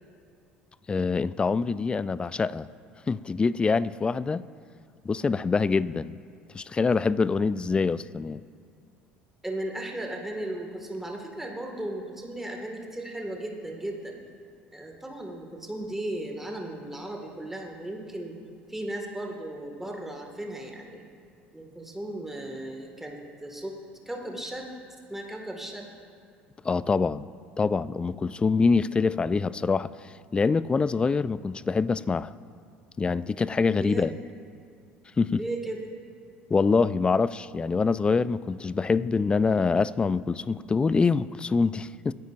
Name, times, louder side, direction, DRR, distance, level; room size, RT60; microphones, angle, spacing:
voice 1, 0.9-2.7 3.1-4.4 5.0-6.2 6.5-8.4 26.6-27.3 27.6-29.9 30.3-32.3 33.0-34.1 35.2-35.4 36.5-42.1, left 4 dB, 20° left, 19 dB, 0.3 m, -25 dB
voice 2, 9.4-14.2 14.7-18.4 18.7-21.0 21.5-23.8 24.1-24.7 25.1-25.9 33.8-34.1 35.3-35.9, right 1 dB, 5° right, 1 dB, 2.0 m, -36 dB
25.0 x 10.0 x 2.6 m, 2.3 s
figure-of-eight pair, 60°, 5 cm